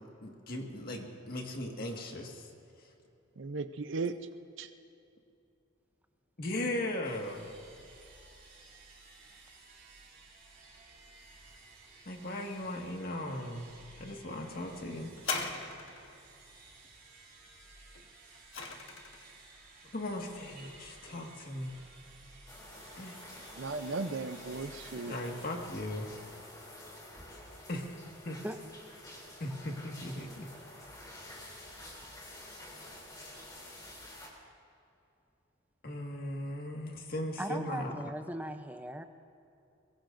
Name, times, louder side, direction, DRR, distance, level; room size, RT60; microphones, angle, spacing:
voice 1, 0.2-2.5 6.4-7.5 12.1-13.7 14.0-15.1 19.9-21.7 23.0-23.2 25.1-26.1 27.7-28.0 28.2-28.4 29.4-30.5 30.8-31.0 35.8-37.9, left 1 dB, 45° left, 1 dB, 1.8 m, -38 dB
voice 2, 3.4-4.1 4.6-4.7 23.5-25.2, right 3 dB, 60° right, 9 dB, 0.6 m, -36 dB
sound 1, 7.0-26.5, right 3 dB, 45° right, 4.9 m, -56 dB
sound 2, 15.2-16.2 17.9-19.3 20.1-20.2, left 4 dB, 70° left, 1.6 m, -38 dB
sound 3, 22.5-34.3, left 1 dB, 20° left, 3.1 m, -49 dB
voice 3, 37.4-39.0, right 1 dB, 10° right, 7 dB, 0.6 m, -38 dB
22.5 x 22.5 x 2.6 m, 2.7 s
head